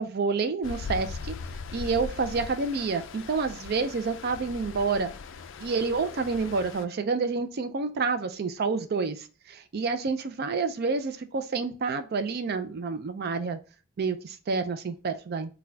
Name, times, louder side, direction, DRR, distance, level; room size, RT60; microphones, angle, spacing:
voice 1, 0.0-1.3 1.7-5.1 5.6-13.6 14.0-15.5, right 4 dB, 50° right, 0.4 m, -29 dB
Stream, 0.6-6.8, left 4 dB, 65° left, 0.3 m, -40 dB
4.0 x 2.2 x 2.6 m
head